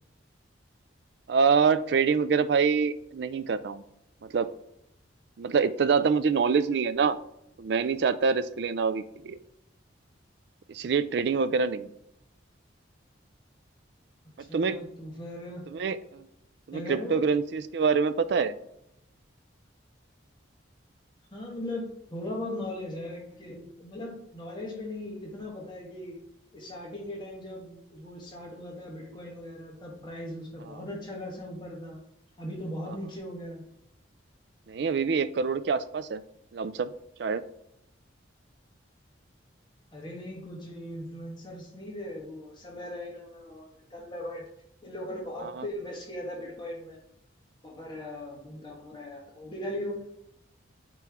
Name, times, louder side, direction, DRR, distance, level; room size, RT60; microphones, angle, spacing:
voice 1, 1.3-3.8 4.3-4.5 5.4-7.2 7.6-9.4 10.7-11.9 14.5-14.8 15.7-16.2 16.7-18.6 30.7-30.8 32.9-33.0 34.7-36.2 36.5-36.9 37.2-37.4 45.4-45.7, right 5 dB, 55° right, 13 dB, 0.3 m, -26 dB
voice 2, 14.5-15.6 16.7-17.2 21.3-26.2 26.5-32.0 32.4-33.6 39.9-44.4 44.8-47.0 47.6-50.0, left 1 dB, 25° left, -2 dB, 1.4 m, -39 dB
8.9 x 3.0 x 3.6 m, 0.79 s
head